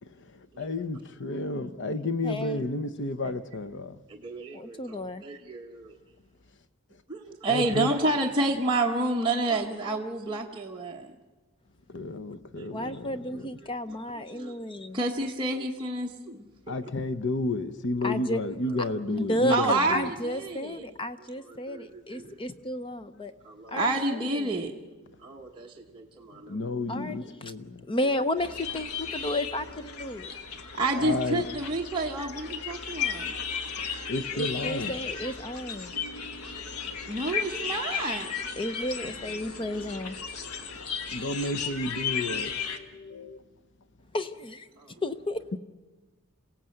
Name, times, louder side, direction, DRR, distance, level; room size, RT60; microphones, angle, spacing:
voice 1, 0.0-4.0 7.5-7.9 11.9-13.4 16.7-20.1 26.3-27.9 30.9-31.5 33.8-34.9 35.9-37.3 38.5-38.6 39.0-43.4, left 2 dB, 55° left, 0.9 m, -33 dB
voice 2, 2.2-2.6 4.5-5.2 12.7-15.0 18.0-18.4 19.1-23.3 23.7-24.5 26.9-27.3 27.9-30.3 34.3-35.9 38.6-40.2 44.1-44.7 45.0-45.6, left 1 dB, 25° left, 0.7 m, -32 dB
voice 3, 4.1-5.9 7.1-11.1 12.6-12.7 14.3-14.5 14.9-16.7 18.0-18.2 19.5-20.8 21.5-22.4 23.4-24.7 25.2-26.6 30.7-33.3 37.1-38.5 44.8-44.9, right 2 dB, 20° right, 1.2 m, -30 dB
sound 1, 28.4-42.8, left 7 dB, 85° left, 1.4 m, -35 dB
27.5 x 17.0 x 7.8 m
head